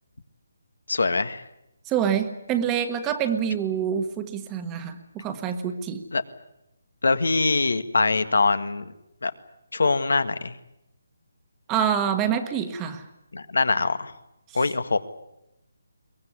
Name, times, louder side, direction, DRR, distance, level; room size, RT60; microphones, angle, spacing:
voice 1, 0.9-1.4 6.1-6.2 7.0-8.9 9.2-9.3 9.7-10.5 13.3-14.1 14.5-15.0, left 3 dB, 85° left, 10 dB, 1.8 m, -23 dB
voice 2, 1.9-6.0 11.7-13.0, right 8 dB, 15° right, 8 dB, 1.4 m, -26 dB
23.0 x 19.0 x 9.7 m, 0.88 s
hypercardioid pair, 170°, 0 cm